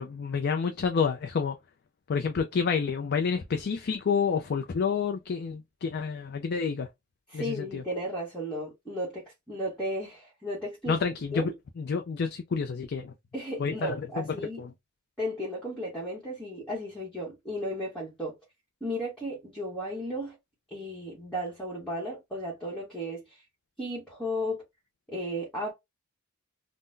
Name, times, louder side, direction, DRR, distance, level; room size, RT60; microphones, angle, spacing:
voice 1, 0.0-1.6 2.1-6.9 7.3-7.8 10.9-11.5 11.8-13.1 13.6-14.7, left 5 dB, 50° left, 0.4 m, -29 dB
voice 2, 7.3-10.9 11.3-11.5 13.3-14.6 15.2-18.3 18.8-20.4 20.7-23.4 23.8-24.6 25.1-25.7, equal, 5° left, 1.0 m, -34 dB
3.7 x 2.1 x 2.5 m
head